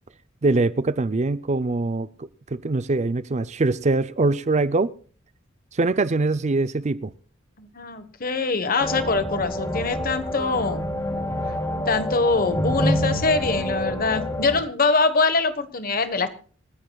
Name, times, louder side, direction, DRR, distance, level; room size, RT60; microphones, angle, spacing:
voice 1, 0.4-4.9 5.7-7.1, right 3 dB, 35° right, 0.5 m, -23 dB
voice 2, 7.6-10.9 11.9-16.3, left 3 dB, 50° left, 1.3 m, -23 dB
sound 1, 8.8-14.6, equal, 20° left, 2.9 m, -27 dB
28.0 x 9.6 x 2.3 m
head